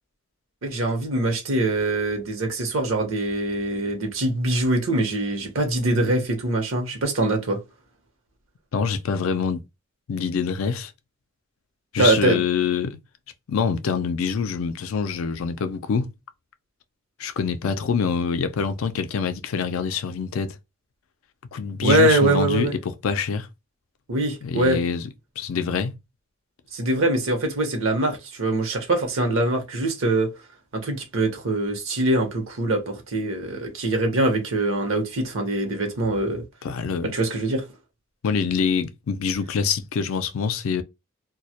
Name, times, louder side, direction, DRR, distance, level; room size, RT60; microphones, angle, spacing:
voice 1, 0.6-7.6 12.0-12.4 21.8-22.7 24.1-24.8 26.7-30.3 30.8-36.4 37.1-37.6, right 2 dB, 75° right, 0.8 m, -23 dB
voice 2, 8.7-9.6 10.1-10.9 11.9-13.0 13.5-16.1 17.2-20.5 21.5-23.5 24.4-25.0 25.4-25.9 36.6-37.1 38.2-40.8, left 6 dB, 85° left, 0.4 m, -25 dB
2.2 x 2.0 x 2.7 m
head